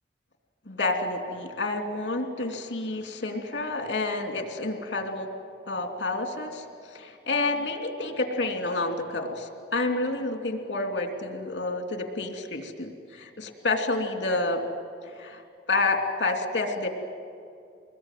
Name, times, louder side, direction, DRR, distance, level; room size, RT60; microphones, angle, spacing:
voice 1, 0.7-5.3 5.7-14.6 15.0-15.4 15.7-16.9, left 2 dB, 70° left, 4 dB, 2.9 m, -29 dB
25.0 x 21.0 x 9.2 m, 2.4 s
head